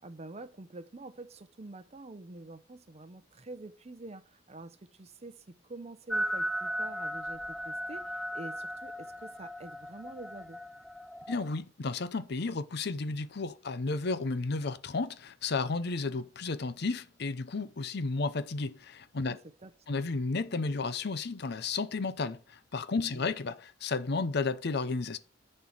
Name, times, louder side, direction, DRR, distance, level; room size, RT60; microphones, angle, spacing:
voice 1, 0.0-10.6 19.3-20.0 23.1-23.3, right 2 dB, 35° right, 0.7 m, -47 dB
sound 1, 6.1-11.5, equal, ahead, 0.4 m, -36 dB
voice 2, 11.3-19.4 19.9-25.2, left 3 dB, 60° left, 0.6 m, -33 dB
10.5 x 4.5 x 6.4 m
head